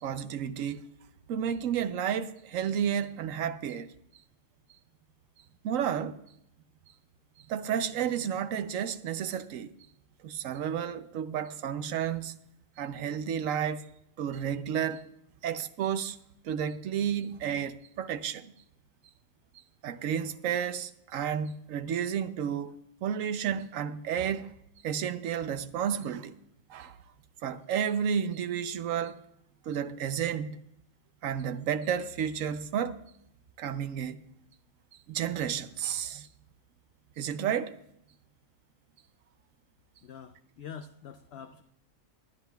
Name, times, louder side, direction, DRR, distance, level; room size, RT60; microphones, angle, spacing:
voice 1, 0.0-0.9 1.3-3.9 5.6-6.2 7.4-9.7 10.2-12.3 12.8-13.9 14.2-15.0 15.4-16.2 16.4-18.5 19.8-24.5 24.8-26.4 26.7-27.0 27.4-29.2 29.6-30.6 31.2-33.0 33.6-34.2 35.1-36.3 37.2-37.8, right 8 dB, 80° right, 1.0 m, -31 dB
voice 2, 40.0-41.6, left 7 dB, 60° left, 0.7 m, -45 dB
20.5 x 10.5 x 2.3 m
omnidirectional pair, 1.4 m